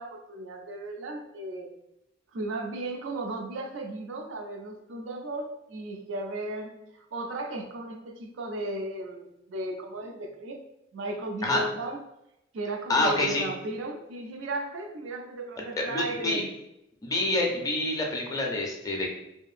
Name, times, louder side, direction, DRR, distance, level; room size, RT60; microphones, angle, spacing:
voice 1, 0.0-1.7 2.3-10.6 10.9-12.0 12.5-16.5, right 2 dB, 75° right, 3 dB, 0.4 m, -35 dB
voice 2, 12.9-13.4 15.8-16.4 17.0-19.1, left 2 dB, 20° left, 0 dB, 0.4 m, -27 dB
2.7 x 2.4 x 2.4 m, 0.87 s
head